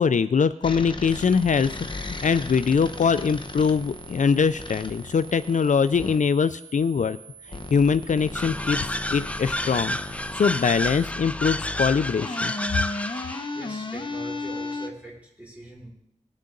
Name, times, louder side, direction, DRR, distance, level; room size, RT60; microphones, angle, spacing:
voice 1, 0.0-1.7 2.0-7.2 7.7-10.0 10.3-12.5, left 6 dB, 70° left, 13 dB, 0.4 m, -22 dB
sound 1, 0.6-6.2 7.5-14.9, left 3 dB, 40° left, 0.9 m, -36 dB
sound 2, 1.1-11.1, right 7 dB, 60° right, 3.1 m, -48 dB
sound 3, 8.4-13.5, left 1 dB, 10° left, 0.4 m, -30 dB
voice 2, 13.5-15.9, right 2 dB, 10° right, -4 dB, 5.3 m, -42 dB
19.5 x 6.6 x 3.9 m, 0.74 s
wide cardioid pair, 85°, 13 cm